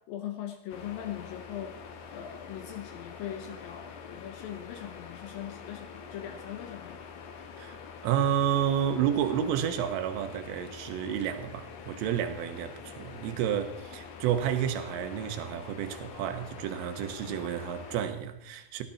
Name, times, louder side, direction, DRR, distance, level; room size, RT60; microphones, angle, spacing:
voice 1, 0.0-1.8 2.1-7.0 17.3-17.4, left 10 dB, 85° left, 2.0 m, -40 dB
sound 1, 0.7-18.1, left 6 dB, 65° left, 3.1 m, -45 dB
voice 2, 8.0-18.8, right 9 dB, 80° right, 3.8 m, -30 dB
18.5 x 15.0 x 4.3 m
omnidirectional pair, 5.7 m